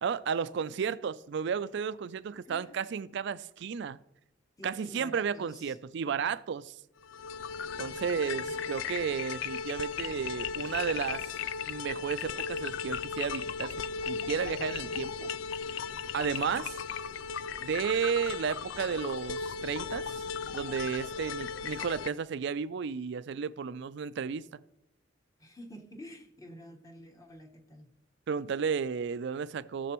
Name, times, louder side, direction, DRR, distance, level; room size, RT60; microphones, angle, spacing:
voice 1, 0.0-4.0 4.6-6.7 7.8-11.3 11.7-13.7 14.1-15.3 16.1-16.8 17.6-20.3 20.5-24.4 28.3-29.9, right 6 dB, 65° right, 0.4 m, -33 dB
voice 2, 2.4-2.8 4.6-5.8 7.8-9.3 25.4-27.9, equal, 20° left, 1.0 m, -50 dB
sound 1, 7.0-22.1, left 6 dB, 80° left, 0.4 m, -36 dB
16.5 x 6.9 x 3.0 m
head